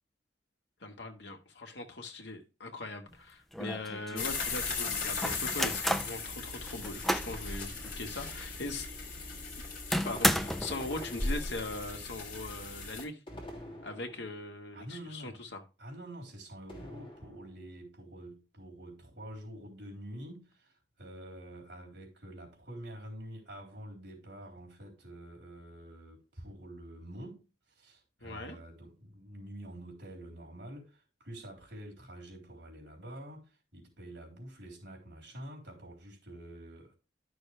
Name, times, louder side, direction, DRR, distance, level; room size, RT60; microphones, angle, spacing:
voice 1, 0.8-8.9 10.0-13.2 13.8-15.6 28.2-28.6, left 2 dB, 75° left, 1.6 m, -40 dB
sound 1, 3.1-3.2 3.5-4.3 5.2-6.2 6.7-7.4 7.8-7.9 8.4-8.5 9.9-10.8, equal, ahead, 0.4 m, -31 dB
Rewinding Tape Recorder, 4.2-13.0, left 4 dB, 50° left, 2.4 m, -38 dB
sound 2, 10.0-12.0 13.3-14.5 16.7-17.7, left 1 dB, 30° left, 3.2 m, -46 dB
voice 2, 14.7-15.4 15.8-37.0, right 1 dB, 80° right, 3.8 m, -47 dB
11.5 x 6.3 x 3.3 m
head